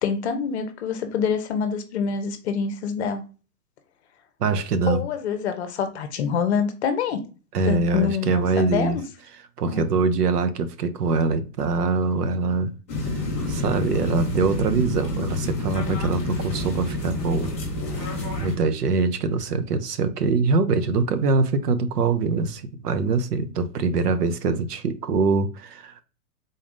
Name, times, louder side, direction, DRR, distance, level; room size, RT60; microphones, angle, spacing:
voice 1, 0.0-3.2 4.9-7.2 7.6-9.0 9.6-9.8, left 6 dB, 45° left, 0.8 m, -26 dB
voice 2, 4.4-5.0 7.5-9.0 9.6-12.7 13.5-17.5 18.4-26.0, right 4 dB, 75° right, 0.8 m, -23 dB
sound 1, 12.9-18.5, left 2 dB, 10° left, 0.4 m, -28 dB
3.9 x 3.4 x 2.5 m
hypercardioid pair, 140°, 47 cm